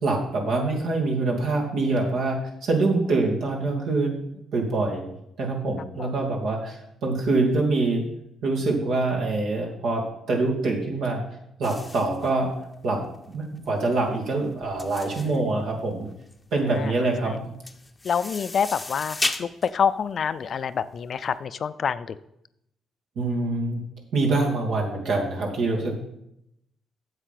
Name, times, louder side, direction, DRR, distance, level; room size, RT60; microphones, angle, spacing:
voice 1, 0.0-4.2 4.5-5.0 5.4-8.0 8.4-10.0 10.3-11.2 11.6-12.5 12.8-16.1 16.5-17.4 23.2-23.8 24.1-26.0, right 3 dB, 75° right, -1 dB, 2.5 m, -25 dB
sound 1, 11.6-21.2, left 2 dB, 20° left, 0.7 m, -36 dB
voice 2, 18.0-22.2, left 7 dB, 55° left, 14 dB, 0.4 m, -27 dB
8.1 x 7.5 x 5.9 m, 0.79 s
cardioid pair, 90°, 0 cm